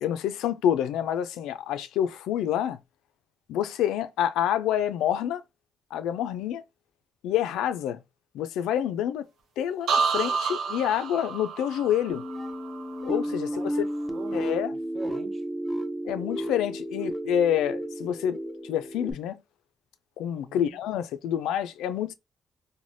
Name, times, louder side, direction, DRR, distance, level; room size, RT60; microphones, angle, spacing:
voice 1, 0.0-2.8 3.5-5.4 5.9-6.6 7.2-8.0 8.3-9.3 9.6-12.2 13.0-13.9 14.3-14.7 16.1-19.4 20.2-22.1, left 10 dB, 90° left, 0.3 m, -27 dB
sound 1, 9.9-13.7 14.0-14.5, right 5 dB, 75° right, 0.6 m, -30 dB
sound 2, 12.1-19.1, equal, ahead, 0.5 m, -32 dB
voice 2, 13.2-14.4 14.7-15.4 20.5-20.8, right 4 dB, 45° right, 0.8 m, -44 dB
3.2 x 2.1 x 2.6 m
cardioid pair, 90°, 0 cm